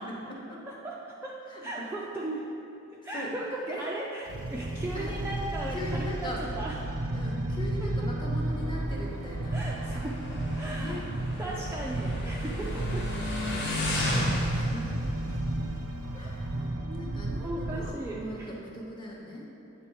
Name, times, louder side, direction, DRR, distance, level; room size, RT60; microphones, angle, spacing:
voice 1, 0.0-0.6 1.4-1.9 3.1-3.3 3.7-3.9 4.9-5.1 5.7-6.5 7.1-9.6 10.7-11.1 11.8-11.9 12.5-12.9 14.0-15.2 16.1-19.5, left 1 dB, 20° left, -3 dB, 0.8 m, -40 dB
voice 2, 0.7-2.5 2.9-6.8 9.5-10.2 10.5-11.0 11.4-13.1 16.6-17.1 17.4-18.5, right 1 dB, 10° right, -4 dB, 0.3 m, -37 dB
sound 1, 4.3-17.9, right 1 dB, 90° right, 0.6 m, -33 dB
Motorcycle, 8.4-16.7, left 1 dB, 50° left, 1.2 m, -35 dB
9.0 x 3.5 x 4.6 m, 2.9 s
head